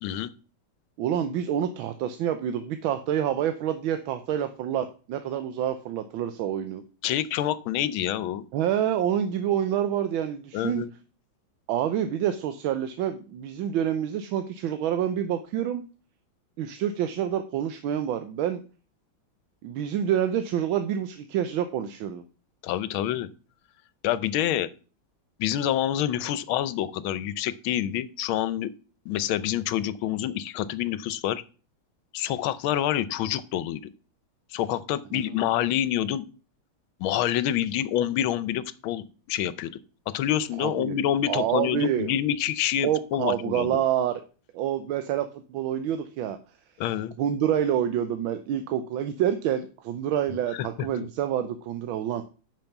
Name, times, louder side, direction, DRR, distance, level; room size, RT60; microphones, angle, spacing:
voice 1, 1.0-6.8 8.5-10.8 11.7-15.8 16.6-18.6 19.6-22.2 35.1-35.2 40.6-40.9 41.3-42.1 42.8-44.2 44.5-46.4 47.2-52.2, right 10 dB, 80° right, 9 dB, 1.5 m, -27 dB
voice 2, 7.0-8.4 10.5-10.9 22.6-23.3 24.0-24.7 25.4-28.7 29.1-31.4 32.1-33.8 34.5-36.3 37.0-39.8 40.1-43.7 46.8-47.1 50.5-50.7, left 11 dB, 85° left, 16 dB, 1.5 m, -27 dB
8.7 x 6.0 x 5.9 m, 0.36 s
omnidirectional pair, 2.2 m